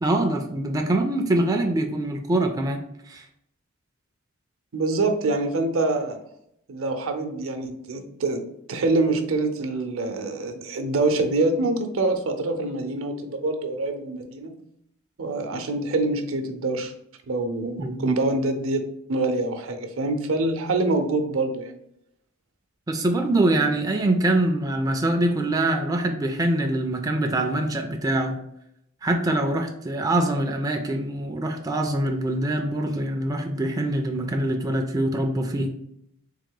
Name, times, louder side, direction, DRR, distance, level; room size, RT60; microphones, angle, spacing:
voice 1, 0.0-3.3 17.8-18.1 22.9-28.3 29.0-35.7, right 1 dB, 15° right, 3 dB, 0.3 m, -24 dB
voice 2, 4.7-6.2 6.7-14.6 15.2-16.9 17.3-18.8 19.1-21.7, right 2 dB, 70° right, 6 dB, 0.6 m, -25 dB
3.7 x 2.9 x 3.7 m, 0.75 s
head